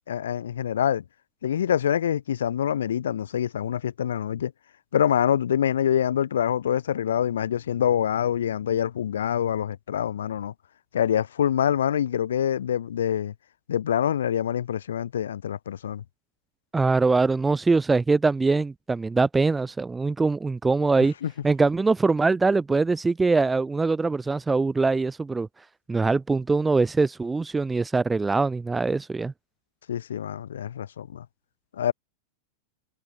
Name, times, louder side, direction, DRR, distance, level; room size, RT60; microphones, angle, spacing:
voice 1, 0.1-1.0 1.4-4.5 4.9-10.5 10.9-13.3 13.7-16.0 21.2-21.3 29.9-31.2 31.8-31.9, left 9 dB, 65° left, 3.2 m, -25 dB
voice 2, 16.7-21.1 21.4-25.5 25.9-29.3, right 3 dB, 10° right, 0.5 m, -23 dB
figure-of-eight pair, 90°, 0 cm